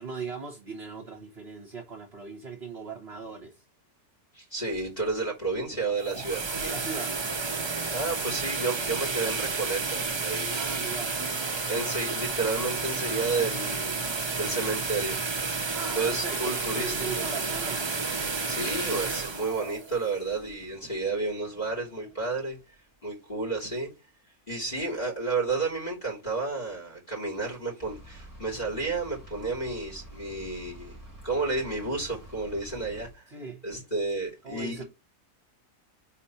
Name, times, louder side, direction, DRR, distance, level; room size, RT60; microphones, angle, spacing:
voice 1, 0.0-3.6 6.6-7.3 10.6-11.2 15.7-17.9 33.3-33.6 34.4-34.8, right 5 dB, 45° right, 1.3 m, -38 dB
voice 2, 4.3-6.6 7.9-10.6 11.5-14.1 14.4-15.2 15.9-17.3 18.5-22.6 23.0-23.9 24.5-30.9 31.2-33.2 33.6-34.8, right 3 dB, 25° left, 3.5 m, -31 dB
sound 1, 5.9-20.8, right 4 dB, 30° right, 0.5 m, -31 dB
sound 2, 27.8-33.1, right 1 dB, 15° right, 1.8 m, -47 dB
4.6 x 4.3 x 5.6 m
omnidirectional pair, 1.6 m